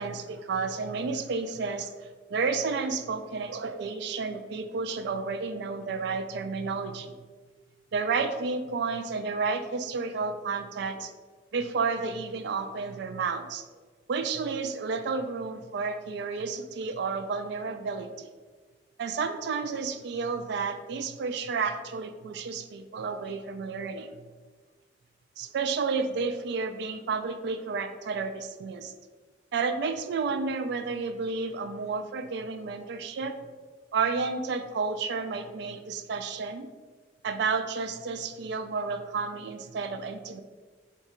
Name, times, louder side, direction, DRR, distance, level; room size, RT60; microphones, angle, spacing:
voice 1, 0.0-1.9 2.3-7.1 7.9-11.1 11.5-13.6 14.1-18.3 19.0-24.1 25.4-28.9 29.5-33.4 33.9-36.7 37.2-40.4, right 4 dB, 60° right, 9 dB, 0.3 m, -31 dB
3.7 x 2.3 x 4.2 m, 1.4 s
head